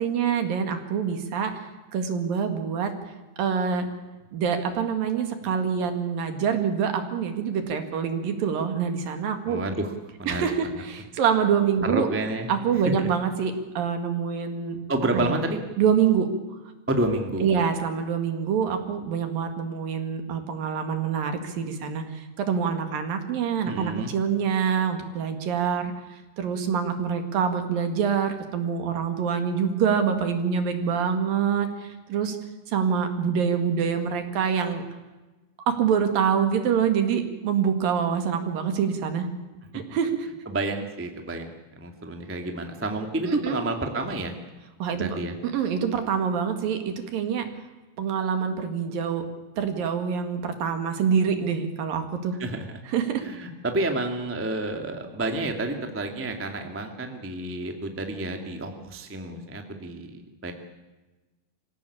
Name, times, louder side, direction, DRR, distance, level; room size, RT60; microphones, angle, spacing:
voice 1, 0.0-1.7 1.9-2.9 3.4-3.9 4.3-9.6 10.3-12.1 12.5-14.8 15.1-15.4 15.8-16.3 17.4-25.9 26.4-32.4 32.7-34.8 35.7-39.3 39.7-40.3 43.3-43.6 44.8-45.1 45.4-47.5 48.0-49.2 49.6-52.3 52.9-53.2, right 7 dB, 60° right, 7 dB, 3.5 m, -25 dB
voice 2, 9.4-9.9 10.2-10.8 11.8-12.5 13.0-13.1 14.9-15.6 16.9-17.5 23.6-24.1 40.4-44.3 45.0-45.4 52.4-52.8 53.2-60.5, right 2 dB, 15° right, 4 dB, 0.4 m, -29 dB
26.0 x 16.5 x 8.6 m, 1.2 s
omnidirectional pair, 5.1 m